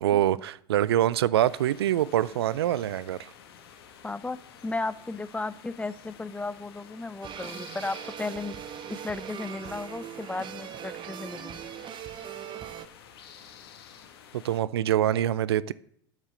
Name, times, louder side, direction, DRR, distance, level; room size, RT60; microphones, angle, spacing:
voice 1, 0.0-3.3 14.4-15.7, right 12 dB, 80° right, 0.4 m, -25 dB
sound 1, 1.4-14.6, left 8 dB, 75° left, 1.2 m, -51 dB
voice 2, 4.0-4.4 4.6-8.6 8.9-11.7, left 3 dB, 10° left, 0.5 m, -35 dB
sound 2, 7.2-12.9, right 10 dB, 40° right, 0.7 m, -40 dB
8.1 x 7.5 x 6.4 m
hypercardioid pair, 80°, 13 cm